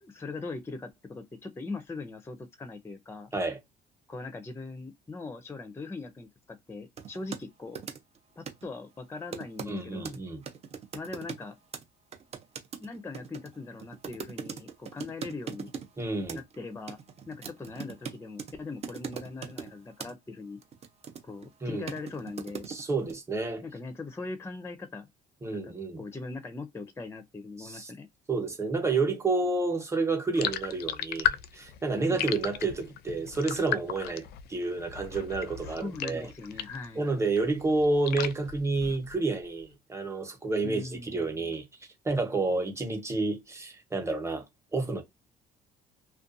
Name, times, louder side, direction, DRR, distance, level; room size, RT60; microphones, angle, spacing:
voice 1, 0.0-3.3 4.1-7.9 8.4-10.1 10.9-11.6 12.8-15.7 16.3-17.0 17.3-20.6 21.2-22.7 23.6-25.1 25.4-28.1 32.1-32.3 35.6-37.1 40.6-41.5, left 3 dB, 15° left, 0.5 m, -40 dB
sound 1, 7.0-7.4 7.7-8.2 8.5-8.7 9.3-9.7 10.0-10.2 10.4-11.5 11.7-11.8 12.1-15.9 16.3-16.6 16.9-18.5 18.8-19.7 20.0-20.1 20.6-21.5 21.9-23.1, right 6 dB, 40° right, 0.7 m, -40 dB
voice 2, 9.7-10.4 16.0-16.4 21.6-21.9 22.7-23.6 25.4-26.0 27.6-27.9 28.3-36.3 37.0-41.6 42.0-44.4 44.7-45.0, right 3 dB, 15° right, 0.9 m, -30 dB
sound 2, 30.3-36.9 37.2-39.3, left 10 dB, 70° left, 0.4 m, -35 dB
2.5 x 2.2 x 2.5 m
cardioid pair, 110°, 17 cm